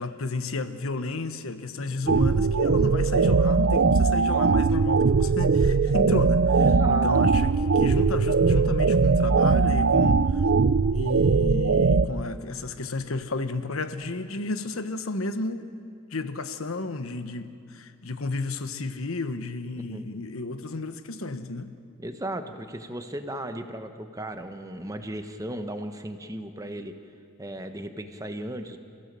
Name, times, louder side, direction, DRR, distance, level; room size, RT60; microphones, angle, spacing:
voice 1, 0.0-10.4 10.9-15.7 16.1-21.8, left 3 dB, 85° left, 10 dB, 1.2 m, -32 dB
voice 2, 1.9-2.2 6.6-7.1 19.8-20.1 22.0-27.0 27.4-28.8, right 1 dB, 15° right, 7 dB, 1.2 m, -36 dB
sound 1, 2.1-12.0, right 4 dB, 65° right, 0.6 m, -20 dB
29.0 x 16.0 x 7.6 m, 2.5 s
head